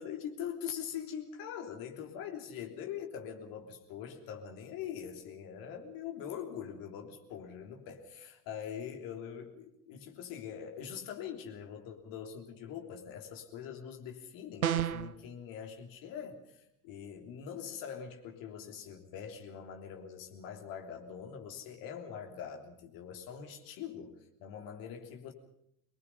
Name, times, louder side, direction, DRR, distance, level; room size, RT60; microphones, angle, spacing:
voice 1, 0.0-25.3, left 8 dB, 50° left, 3 dB, 3.4 m, -43 dB
sound 1, 14.6-15.2, right 9 dB, 75° right, 0.8 m, -30 dB
24.0 x 21.0 x 5.7 m, 0.76 s
figure-of-eight pair, 65°, 44 cm